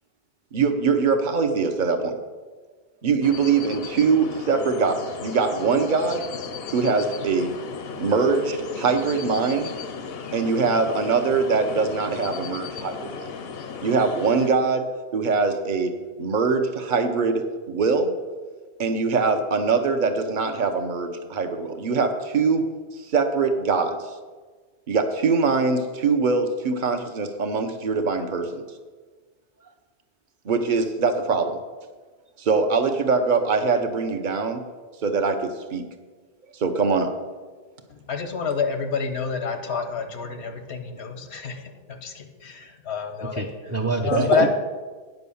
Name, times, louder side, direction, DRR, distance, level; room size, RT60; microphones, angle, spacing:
voice 1, 0.5-2.2 3.0-6.2 6.7-7.5 8.0-9.7 10.3-13.3 13.8-14.8 15.1-15.9 16.2-17.4 17.7-18.1 18.8-22.6 23.1-24.0 24.9-28.6 30.4-31.6 32.4-34.6 35.0-35.8 36.5-37.1 44.1-44.5, right 4 dB, 50° right, 7 dB, 1.0 m, -22 dB
sound 1, 3.2-14.5, left 6 dB, 70° left, 0.9 m, -36 dB
voice 2, 37.9-43.4 44.0-44.5, left 6 dB, 85° left, 7 dB, 1.3 m, -28 dB
voice 3, 43.2-44.5, right 3 dB, 20° right, 3 dB, 0.5 m, -27 dB
9.3 x 5.5 x 7.0 m, 1.4 s
omnidirectional pair, 1.1 m